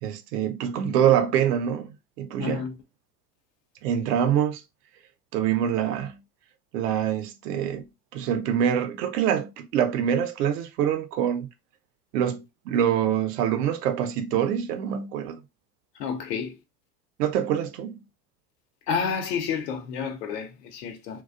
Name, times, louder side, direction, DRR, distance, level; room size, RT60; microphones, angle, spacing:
voice 1, 0.0-2.6 3.8-4.6 5.3-6.2 6.7-7.9 8.1-11.5 12.1-15.4 17.2-18.0, right 9 dB, 75° right, 0.6 m, -25 dB
voice 2, 2.4-2.7 16.0-16.6 18.9-21.2, left 6 dB, 80° left, 0.8 m, -30 dB
2.3 x 2.2 x 2.3 m
hypercardioid pair, 80°, 48 cm